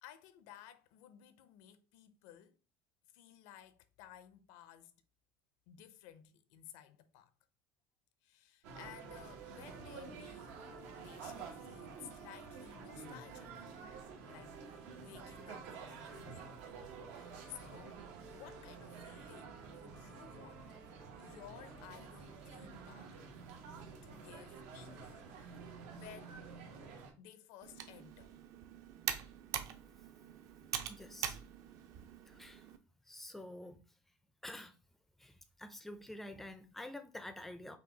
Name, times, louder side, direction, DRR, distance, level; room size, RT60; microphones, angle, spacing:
voice 1, 0.0-2.6 3.1-4.9 5.7-7.3 8.2-10.6 11.0-13.6 14.3-16.6 17.1-18.0 18.3-20.8 21.2-23.2 24.0-25.6 25.9-26.7 27.2-28.4, left 10 dB, 75° left, 0.6 m, -56 dB
sound 1, 8.6-27.1, right 5 dB, 85° right, 1.2 m, -50 dB
Computer keyboard, 27.6-32.8, right 9 dB, 50° right, 0.5 m, -43 dB
voice 2, 30.9-31.4 32.3-32.6 33.1-33.8 34.4-34.7 35.2-35.3 35.6-37.8, left 1 dB, 5° left, 0.4 m, -48 dB
5.6 x 2.3 x 3.8 m
cardioid pair, 165°, 7 cm